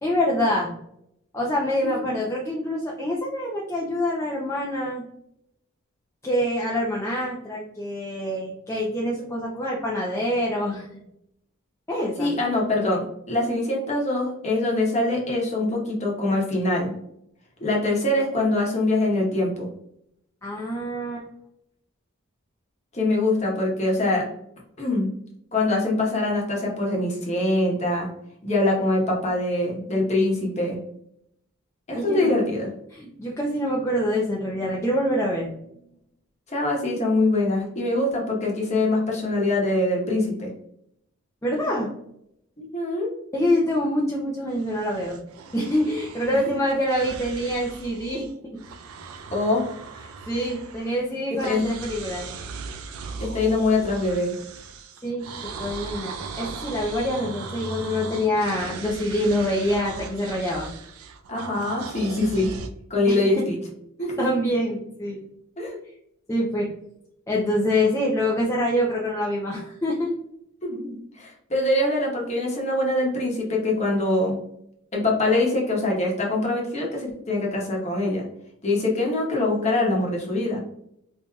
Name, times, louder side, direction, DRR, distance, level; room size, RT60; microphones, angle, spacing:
voice 1, 0.0-0.7 1.3-5.0 6.2-10.9 11.9-12.3 20.4-21.2 31.9-32.3 32.9-35.5 41.4-41.9 43.3-45.2 45.5-48.3 48.5-48.6 50.3-52.3 55.0-55.3 55.6-60.7 63.1-63.3 64.2-65.2 66.3-66.7 67.3-70.1, left 1 dB, 15° left, -4 dB, 0.4 m, -25 dB
voice 2, 1.8-2.2 12.2-16.9 17.6-19.7 22.9-24.3 24.8-25.1 25.5-28.1 28.4-30.8 31.9-32.7 36.5-40.5 42.6-43.1 46.4-46.6 49.3-49.6 51.3-51.7 53.2-54.3 61.3-62.5 62.9-63.6 64.0-64.1 65.6-65.8 70.6-74.4 74.9-78.2 78.6-80.6, left 2 dB, 30° left, -2 dB, 1.0 m, -24 dB
sound 1, 44.5-48.3 48.6-51.1 51.4-62.7, right 4 dB, 85° right, 0.4 m, -38 dB
4.6 x 2.7 x 2.2 m, 0.75 s
head